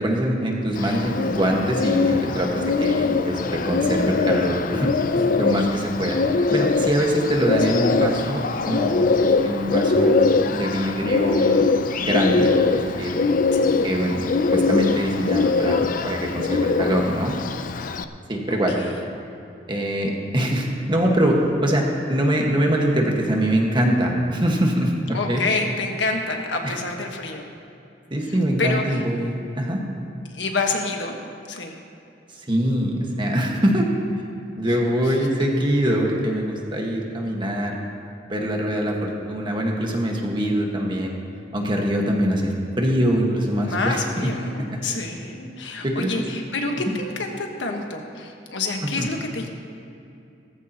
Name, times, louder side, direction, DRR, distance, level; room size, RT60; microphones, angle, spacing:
voice 1, 0.0-4.9 5.4-6.2 6.5-9.1 9.4-11.7 12.0-13.1 13.8-14.2 14.5-17.3 18.3-18.8 19.7-24.9 25.3-25.4 26.6-26.7 28.1-29.8 32.5-33.9 34.6-37.7 38.3-41.2 41.5-45.0 45.8-46.2 49.0-49.1, equal, 25° right, 0 dB, 1.6 m, -23 dB
Bird, 0.8-18.0, left 4 dB, 50° left, 0.5 m, -22 dB
voice 2, 7.7-8.4 9.2-9.4 13.5-13.9 18.5-19.0 25.1-27.5 28.2-29.0 30.3-31.1 31.5-31.7 34.9-35.1 43.6-49.5, left 3 dB, 85° left, 2 dB, 1.5 m, -28 dB
18.0 x 14.5 x 3.0 m, 2.6 s
head